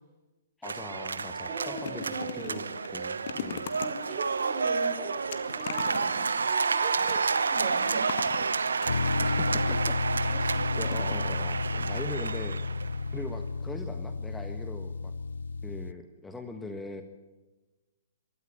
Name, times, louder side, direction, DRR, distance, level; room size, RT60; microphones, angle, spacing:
voice 1, 0.6-3.7 9.2-10.0 10.2-12.6 13.1-15.1 15.6-17.0, left 2 dB, 10° left, 6 dB, 1.4 m, -41 dB
sound 1, 0.6-13.0, right 5 dB, 75° right, 1.0 m, -30 dB
sound 2, 1.3-10.1 10.8-11.6 11.9-12.1 12.3-12.4, left 7 dB, 55° left, 1.7 m, -42 dB
voice 2, 1.5-2.8 3.8-6.2 6.5-8.2, right 4 dB, 40° right, 3 dB, 6.2 m, -39 dB
sound 3, 8.9-15.9, left 4 dB, 70° left, 0.6 m, -32 dB
24.0 x 13.5 x 9.0 m, 1.1 s
figure-of-eight pair, 120°, 0 cm